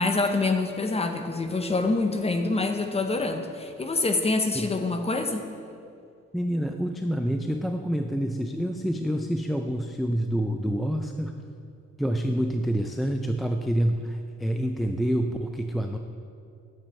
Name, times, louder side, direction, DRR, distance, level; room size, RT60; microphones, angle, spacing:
voice 1, 0.0-5.5, left 3 dB, 20° left, 6 dB, 0.8 m, -26 dB
voice 2, 6.3-11.3 12.0-16.0, equal, ahead, 4 dB, 0.4 m, -27 dB
9.5 x 7.4 x 4.4 m, 2.4 s
cardioid pair, 90°, 30 cm